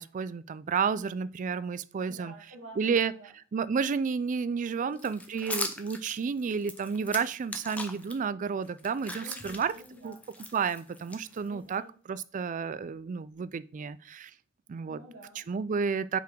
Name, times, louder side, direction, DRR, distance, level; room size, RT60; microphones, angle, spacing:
voice 1, 0.0-2.3 2.8-3.1 3.5-9.7 10.0-10.2 10.5-11.8 12.1-14.3 14.7-15.0 15.5-16.2, right 6 dB, 40° right, 16 dB, 0.3 m, -31 dB
voice 2, 2.1-3.3 4.6-5.0 9.2-10.2 11.5-11.9 14.9-15.5, right 1 dB, 80° right, -4 dB, 1.6 m, -48 dB
sound 1, 5.0-8.1 8.6-11.7, left 2 dB, 5° left, 0.6 m, -40 dB
5.6 x 4.2 x 4.5 m, 0.40 s
head